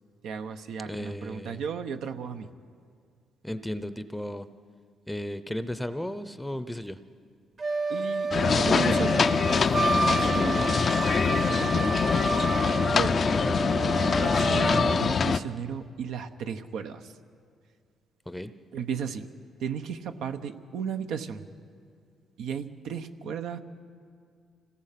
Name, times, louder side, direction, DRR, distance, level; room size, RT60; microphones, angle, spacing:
voice 1, 0.2-2.5 7.9-9.3 10.1-10.8 11.2-12.3 12.9-13.2 14.2-17.1 18.7-19.3 19.6-21.5 22.4-23.6, right 7 dB, 80° right, 7 dB, 1.0 m, -35 dB
voice 2, 0.9-1.6 3.4-4.5 5.1-7.0 10.2-10.7 13.3-13.7 18.3-18.5, left 1 dB, 5° left, 12 dB, 0.7 m, -35 dB
Wind instrument woodwind instrument, 7.6-15.0, right 3 dB, 40° right, 1.1 m, -29 dB
sound 1, 8.3-15.4, left 6 dB, 45° left, 0.5 m, -24 dB
26.0 x 17.5 x 5.9 m, 2.2 s
cardioid pair, 90°, 0 cm